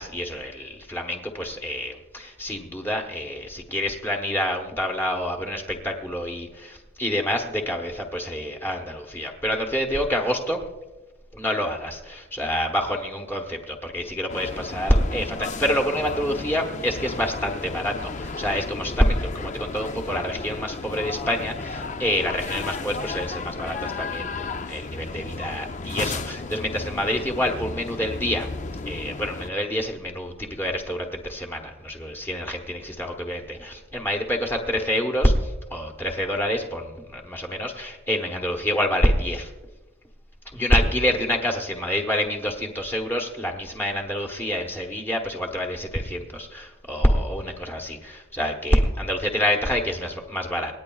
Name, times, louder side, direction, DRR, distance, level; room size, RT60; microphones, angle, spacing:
voice 1, 0.0-10.6 11.3-28.5 28.9-39.5 40.5-50.7, equal, 10° left, 1 dB, 1.1 m, -27 dB
sound 1, 14.3-29.5, left 3 dB, 35° left, 0.5 m, -34 dB
27.0 x 9.5 x 2.4 m, 1.1 s
head